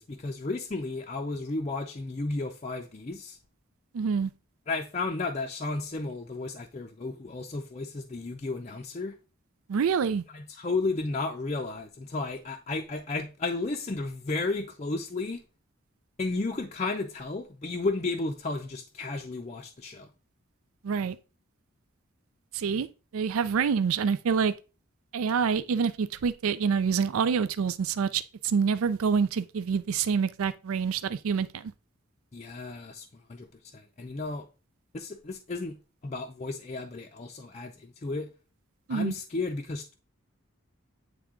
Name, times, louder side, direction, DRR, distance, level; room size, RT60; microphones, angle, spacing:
voice 1, 0.0-3.4 4.7-9.1 10.3-15.4 16.2-20.1 32.3-34.5 34.9-35.8 36.0-38.3 38.9-39.9, left 3 dB, 30° left, 0.5 m, -33 dB
voice 2, 3.9-4.3 9.7-10.2 20.8-21.2 22.5-22.9 23.1-24.5 25.1-31.7 38.9-39.1, right 6 dB, 75° right, 0.4 m, -26 dB
8.7 x 3.4 x 3.7 m
head